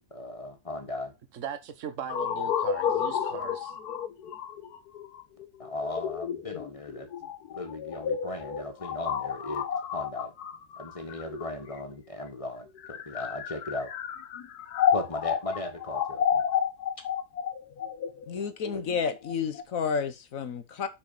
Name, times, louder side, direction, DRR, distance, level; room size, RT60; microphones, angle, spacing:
voice 1, 0.1-1.1 5.6-7.1 7.5-9.6 9.9-10.3 10.8-13.9 14.9-16.4, left 1 dB, 20° left, 1.6 m, -37 dB
voice 2, 1.3-3.7, right 8 dB, 55° right, 1.4 m, -39 dB
sound 1, 2.1-11.9 12.7-19.6, left 8 dB, 80° left, 1.4 m, -31 dB
voice 3, 18.3-20.9, left 6 dB, 60° left, 1.2 m, -31 dB
6.5 x 5.7 x 5.7 m
omnidirectional pair, 1.7 m